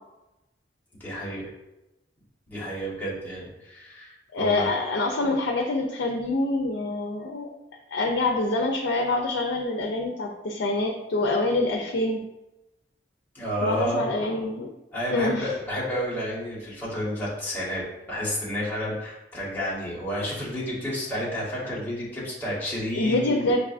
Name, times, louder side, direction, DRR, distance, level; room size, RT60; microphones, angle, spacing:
voice 1, 1.0-1.5 2.5-4.7 13.3-14.0 14.9-23.4, equal, 10° left, -7 dB, 1.2 m, -31 dB
voice 2, 4.3-7.5 7.9-12.2 13.6-14.7 15.1-15.5 22.9-23.6, left 2 dB, 90° left, 2 dB, 0.4 m, -26 dB
6.4 x 2.4 x 2.4 m, 0.96 s
head